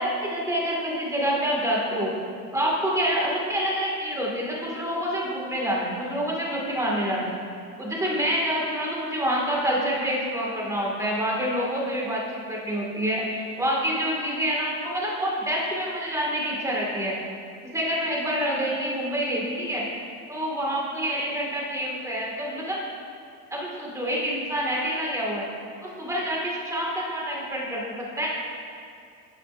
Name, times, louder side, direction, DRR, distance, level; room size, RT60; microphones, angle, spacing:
voice 1, 0.0-2.1 2.5-7.3 7.8-12.2 12.5-17.1 17.7-19.8 20.3-22.8 23.5-25.4 25.8-28.3, equal, 10° right, -4 dB, 1.8 m, -27 dB
12.0 x 6.7 x 2.5 m, 2.5 s
supercardioid pair, 115°, 38 cm